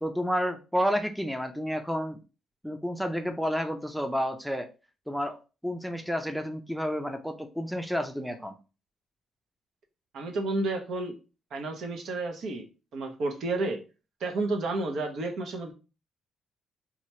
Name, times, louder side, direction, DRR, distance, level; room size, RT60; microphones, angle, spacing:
voice 1, 0.0-2.2 2.6-4.7 5.1-5.4 5.6-8.5, equal, ahead, 6 dB, 0.5 m, -30 dB
voice 2, 10.1-11.2 11.5-12.7 12.9-13.8 14.2-15.7, right 2 dB, 70° right, 4 dB, 0.9 m, -31 dB
2.9 x 2.4 x 4.2 m, 0.31 s
cardioid pair, 90°, 0 cm